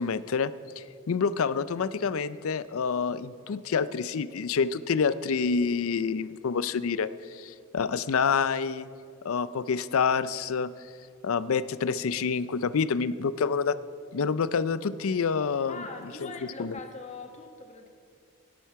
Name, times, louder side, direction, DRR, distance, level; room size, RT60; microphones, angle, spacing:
voice 1, 0.0-8.9 9.2-10.7 11.2-13.8 14.1-15.8 16.6-16.8, left 5 dB, 75° left, 16 dB, 0.5 m, -27 dB
voice 2, 15.7-17.9, left 3 dB, 30° left, 4 dB, 1.2 m, -42 dB
17.5 x 10.5 x 4.6 m, 2.3 s
head